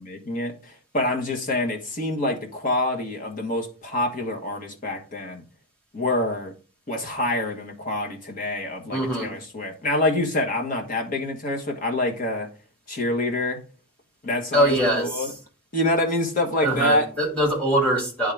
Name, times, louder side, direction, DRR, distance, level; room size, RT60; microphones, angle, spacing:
voice 1, 0.0-5.4 5.9-6.5 6.9-12.5 12.9-13.6 14.2-15.3 15.7-17.1, left 1 dB, 40° left, 1.3 m, -26 dB
voice 2, 8.9-9.3 14.5-15.3 16.6-18.3, right 1 dB, 5° left, 2.1 m, -22 dB
9.8 x 3.7 x 3.4 m
head